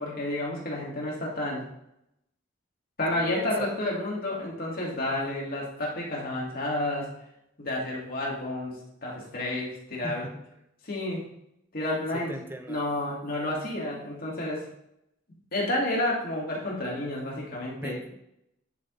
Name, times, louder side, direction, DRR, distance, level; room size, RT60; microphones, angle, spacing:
voice 1, 0.0-1.7 3.0-7.1 7.6-10.2 10.8-11.3 11.7-12.3 12.7-14.7 15.5-18.0, left 1 dB, 50° left, -3 dB, 2.0 m, -30 dB
voice 2, 3.1-3.8 10.0-10.5 12.1-12.8 17.8-18.2, right 1 dB, 10° right, 5 dB, 0.5 m, -39 dB
10.5 x 3.5 x 3.8 m, 0.79 s
head